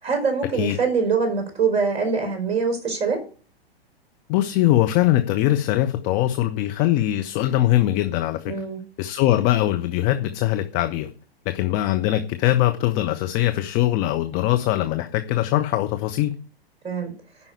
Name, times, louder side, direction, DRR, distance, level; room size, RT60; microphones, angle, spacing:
voice 1, 0.0-3.2 8.5-8.8 16.8-17.1, right 5 dB, 20° right, 4 dB, 3.9 m, -23 dB
voice 2, 4.3-8.5 9.0-11.1 11.5-16.3, left 14 dB, 25° left, 7 dB, 0.8 m, -21 dB
8.9 x 5.6 x 8.1 m, 0.39 s
figure-of-eight pair, 105°, 31 cm